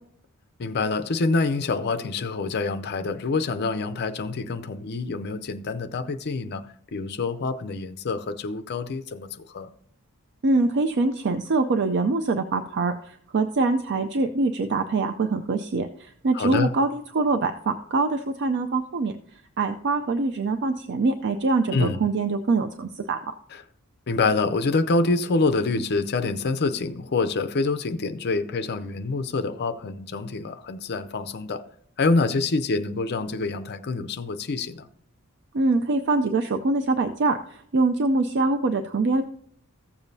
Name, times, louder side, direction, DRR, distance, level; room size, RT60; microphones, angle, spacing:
voice 1, 0.6-6.6 6.9-9.7 16.3-16.7 21.7-22.0 23.5-23.6 24.1-31.6 32.0-34.9, left 3 dB, 50° left, 0.5 m, -26 dB
voice 2, 10.4-19.2 19.6-23.2 35.5-39.2, right 3 dB, 50° right, 0.5 m, -24 dB
14.5 x 7.1 x 2.7 m
head